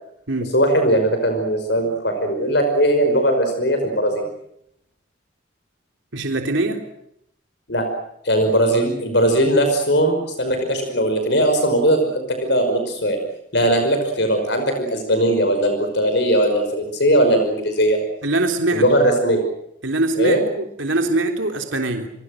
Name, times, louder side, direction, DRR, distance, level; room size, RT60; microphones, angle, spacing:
voice 1, 0.5-4.3 7.7-7.9 8.2-13.2 13.5-18.0 18.7-19.4 20.2-20.4, right 1 dB, 60° left, 6 dB, 5.5 m, -19 dB
voice 2, 6.1-6.8 18.2-18.8 19.8-22.1, right 2 dB, 80° right, 4 dB, 3.5 m, -22 dB
29.5 x 24.0 x 6.5 m, 0.76 s
head